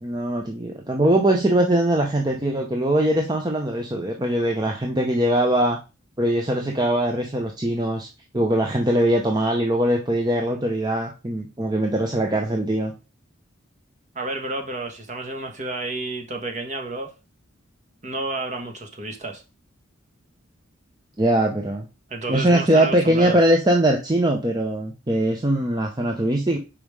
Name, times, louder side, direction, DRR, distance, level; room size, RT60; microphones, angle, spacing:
voice 1, 0.0-5.8 6.2-8.1 8.3-12.9 21.2-21.9 22.3-26.6, right 1 dB, 20° right, 0.7 m, -21 dB
voice 2, 14.1-17.1 18.0-19.4 22.1-23.4, right 2 dB, 35° right, 1.3 m, -30 dB
5.4 x 5.0 x 4.8 m
head